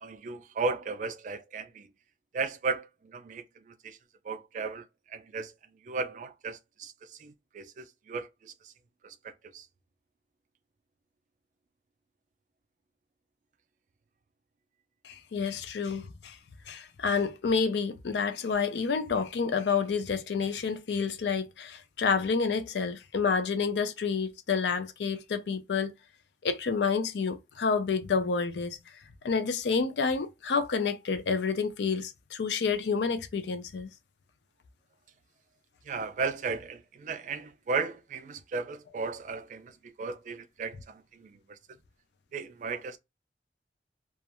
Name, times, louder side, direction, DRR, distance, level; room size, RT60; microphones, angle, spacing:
voice 1, 0.0-1.9 2.3-4.0 4.2-5.5 5.8-8.7 9.0-9.7 35.8-41.6 42.3-43.0, right 4 dB, 45° right, 0.3 m, -36 dB
voice 2, 15.0-16.4 16.7-25.9 26.4-28.8 29.2-33.9, left 5 dB, 80° left, 0.4 m, -29 dB
2.4 x 2.0 x 2.9 m
head